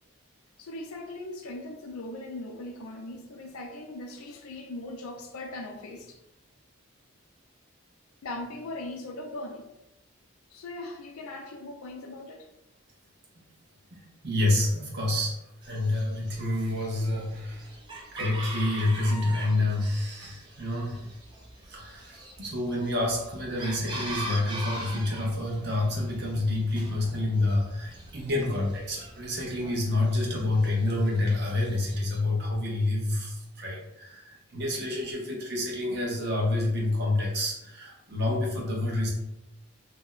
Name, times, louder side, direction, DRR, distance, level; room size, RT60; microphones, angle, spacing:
voice 1, 0.6-6.2 8.2-9.7 10.5-12.5, left 2 dB, 90° left, 0.5 m, -39 dB
voice 2, 13.9-17.7 18.1-21.1 21.7-39.1, left 2 dB, 50° right, 0.8 m, -28 dB
Chicken rooster, 15.6-32.2, right 1 dB, 20° right, 0.4 m, -43 dB
2.7 x 2.1 x 3.8 m
head